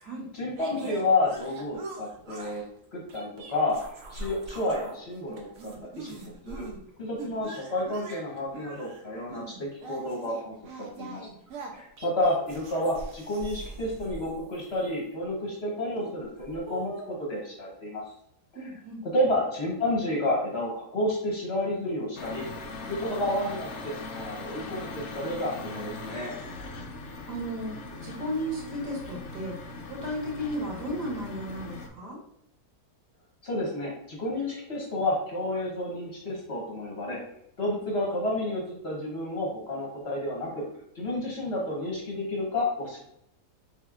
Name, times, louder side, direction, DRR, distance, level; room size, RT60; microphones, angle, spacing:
voice 1, 0.3-2.6 2.9-3.8 4.1-6.7 7.0-11.2 11.7-18.0 19.1-22.4 22.9-26.4 33.4-37.2 37.6-40.7 40.9-43.0, left 1 dB, 45° left, -3 dB, 1.0 m, -30 dB
sound 1, 0.6-2.7 3.1-5.0 5.3-6.8 7.2-15.1 15.9-17.3, right 3 dB, 60° right, 1.0 m, -43 dB
voice 2, 18.5-19.0 27.3-29.6 29.9-32.2, equal, 80° right, -2 dB, 1.7 m, -34 dB
sound 2, 22.2-31.9, left 3 dB, 70° left, 0.7 m, -40 dB
4.4 x 3.4 x 2.4 m, 0.75 s
omnidirectional pair, 1.7 m